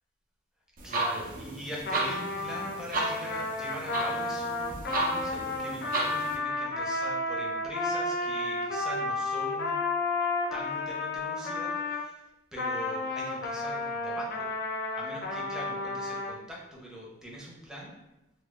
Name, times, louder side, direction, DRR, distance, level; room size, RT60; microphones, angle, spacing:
voice 1, 0.8-9.8 10.5-14.5 14.9-18.0, equal, 5° right, -4 dB, 0.7 m, -42 dB
sound 1, 0.8-6.4, right 2 dB, 45° right, 0.6 m, -34 dB
Trumpet, 1.8-12.1 12.6-16.3, left 2 dB, 55° left, 0.4 m, -32 dB
4.0 x 2.8 x 2.3 m, 0.95 s
head